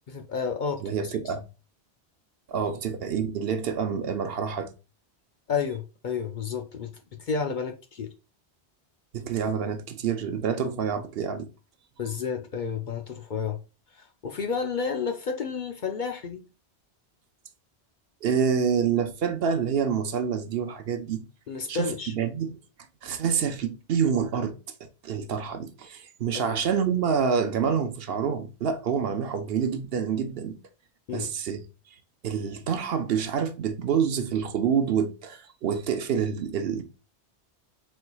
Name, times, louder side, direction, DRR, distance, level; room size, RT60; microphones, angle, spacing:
voice 1, 0.1-0.9 5.5-6.9 7.2-8.1 12.0-13.6 14.0-16.4 21.5-22.1 26.3-26.5 31.1-31.3, left 6 dB, 55° left, 0.6 m, -31 dB
voice 2, 0.8-1.4 2.5-4.7 9.1-11.5 18.2-21.2 21.7-22.6 23.0-24.6 25.0-30.6 31.1-31.6 32.2-36.8, right 7 dB, 65° right, 0.8 m, -27 dB
4.5 x 4.0 x 2.3 m
omnidirectional pair, 1.1 m